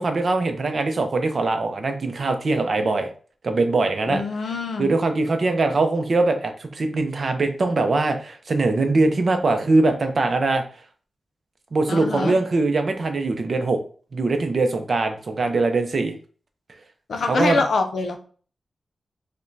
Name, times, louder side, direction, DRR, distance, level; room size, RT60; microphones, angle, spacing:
voice 1, 0.0-3.1 3.4-4.2 4.8-10.6 11.7-13.8 14.1-16.1 17.2-17.6, right 3 dB, 50° right, 6 dB, 0.5 m, -22 dB
voice 2, 4.1-5.0 11.9-12.4 17.1-18.2, left 3 dB, 75° left, 5 dB, 0.6 m, -24 dB
4.8 x 2.2 x 2.7 m, 0.41 s
wide cardioid pair, 160°, 0 cm